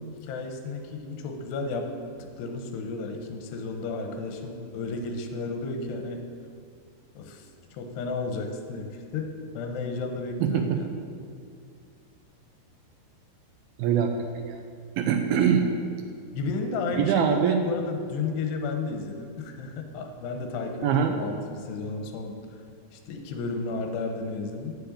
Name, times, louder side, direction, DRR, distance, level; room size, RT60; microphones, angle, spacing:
voice 1, 0.0-1.9 2.2-6.3 7.2-7.5 7.7-10.9 16.3-22.4 22.9-24.8, left 3 dB, 85° left, 4 dB, 3.2 m, -33 dB
voice 2, 10.4-10.8 13.8-14.6 15.0-15.7 17.0-17.6 20.8-21.1, right 8 dB, 80° right, 5 dB, 2.3 m, -23 dB
8.5 x 8.0 x 8.5 m, 2.2 s
omnidirectional pair, 4.8 m